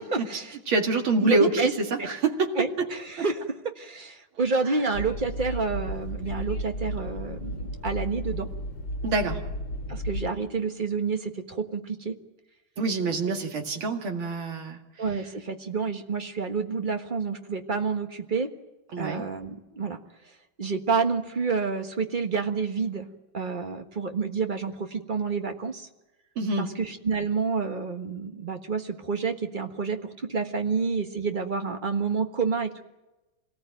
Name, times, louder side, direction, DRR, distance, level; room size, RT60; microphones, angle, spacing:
voice 1, 0.0-0.5 1.2-1.7 2.0-2.1 2.6-8.5 9.9-12.2 13.3-13.4 15.0-18.5 19.0-20.0 20.6-23.1 23.3-25.9 26.6-32.8, right 4 dB, 25° right, 5 dB, 1.4 m, -29 dB
voice 2, 0.7-2.9 9.0-9.4 12.8-14.8 18.9-19.2 26.4-26.7, right 3 dB, 75° right, 2 dB, 3.0 m, -26 dB
Train, 4.9-10.3, equal, 65° left, 2.4 m, -33 dB
26.0 x 18.5 x 9.1 m, 1.0 s
omnidirectional pair, 2.2 m